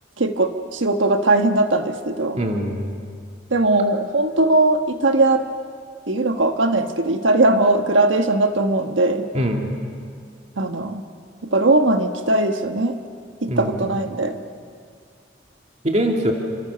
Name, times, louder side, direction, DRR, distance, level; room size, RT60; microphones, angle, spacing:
voice 1, 0.2-2.4 3.5-5.4 6.1-9.3 10.6-11.1 11.4-13.0 13.4-14.4, right 2 dB, 80° right, 6 dB, 1.4 m, -19 dB
voice 2, 2.4-3.0 9.3-9.7 13.5-13.8 15.8-16.3, equal, 35° right, 2 dB, 2.3 m, -22 dB
29.0 x 26.5 x 6.9 m, 2.2 s
head